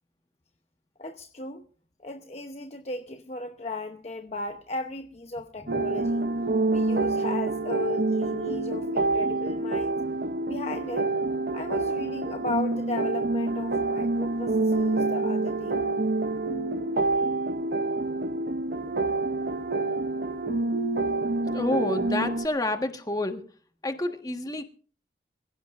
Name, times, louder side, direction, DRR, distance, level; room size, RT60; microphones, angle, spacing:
voice 1, 1.0-1.6 2.0-6.3 6.7-10.0 10.5-11.1 11.5-15.8, left 2 dB, 35° left, 0.8 m, -36 dB
sound 1, 5.7-22.5, right 2 dB, 55° right, 0.7 m, -27 dB
voice 2, 21.5-23.5 23.8-24.6, left 2 dB, 20° left, 1.5 m, -29 dB
24.5 x 16.0 x 2.6 m
head